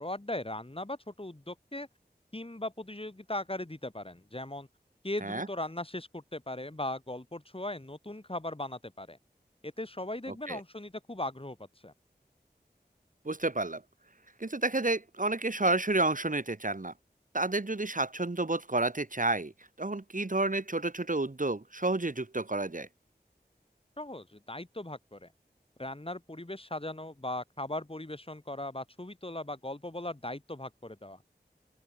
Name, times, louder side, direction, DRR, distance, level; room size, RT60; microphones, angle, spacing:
voice 1, 0.0-1.9 2.3-4.7 5.0-9.2 9.6-11.6 11.8-11.9 24.0-25.3 25.8-31.2, left 1 dB, 30° left, 4.8 m, -38 dB
voice 2, 13.3-13.8 14.4-16.9 17.3-19.5 19.8-22.9, right 2 dB, 50° right, 2.1 m, -30 dB
open air
wide cardioid pair, 45°, 18 cm